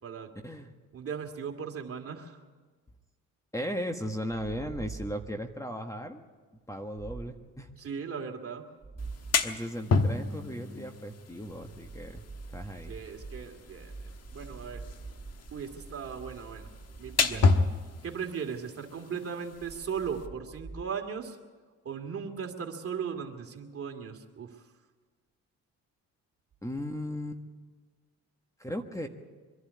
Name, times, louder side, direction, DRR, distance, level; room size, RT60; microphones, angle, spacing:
voice 1, 0.9-2.4 7.8-8.7 12.9-14.9 15.5-16.7 17.0-17.5 18.0-21.4 21.8-24.7, right 6 dB, 50° right, 4 dB, 2.4 m, -38 dB
voice 2, 3.5-6.2 6.7-7.7 9.4-12.2 12.5-12.9 17.3-17.7 26.6-27.4 28.6-29.1, equal, 10° left, 5 dB, 1.5 m, -36 dB
sound 1, 4.3-5.5 7.0-7.5 8.8-9.5 11.4-18.2 19.5-20.8, right 4 dB, 25° right, 1.2 m, -45 dB
sound 2, 9.0-20.3, left 4 dB, 55° left, 1.3 m, -32 dB
24.0 x 11.5 x 9.6 m, 1.4 s
cardioid pair, 90°, 30 cm